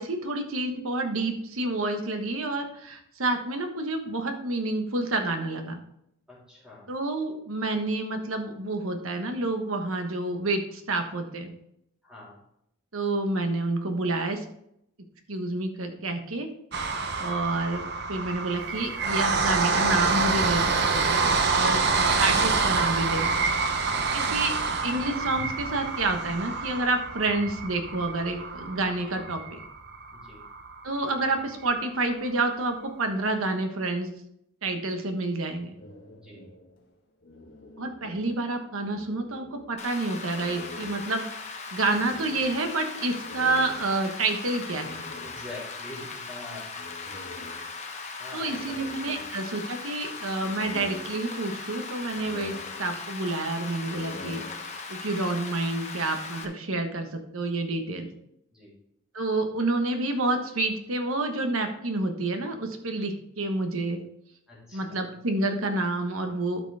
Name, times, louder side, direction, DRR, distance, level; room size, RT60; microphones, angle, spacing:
voice 1, 0.0-5.8 6.9-11.5 12.9-14.4 15.3-16.5 17.2-17.8 18.1-23.3 24.1-24.5 24.8-29.6 30.8-34.1 34.6-35.8 37.8-45.1 48.3-54.4 54.9-58.1 59.1-64.0 64.7-66.6, right 2 dB, 70° right, 5 dB, 1.2 m, -29 dB
voice 2, 6.3-6.9 12.0-12.4 16.9-17.2 23.8-24.4 30.1-30.4 36.2-36.5 45.2-47.0 48.2-49.3 58.5-58.8 64.5-65.0, left 2 dB, 5° right, -7 dB, 3.4 m, -45 dB
sound 1, 16.7-30.8 31.3-31.4 31.6-31.7, right 4 dB, 50° right, 0.8 m, -27 dB
sound 2, 35.7-38.6 38.8-39.9 40.3-45.8 46.7-48.0 48.5-49.8 50.2-51.7 52.0-53.3 53.7-55.1, left 2 dB, 50° left, 1.5 m, -46 dB
Rain, 39.8-56.4, left 4 dB, 30° left, 1.0 m, -39 dB
12.5 x 6.0 x 3.4 m, 0.77 s
head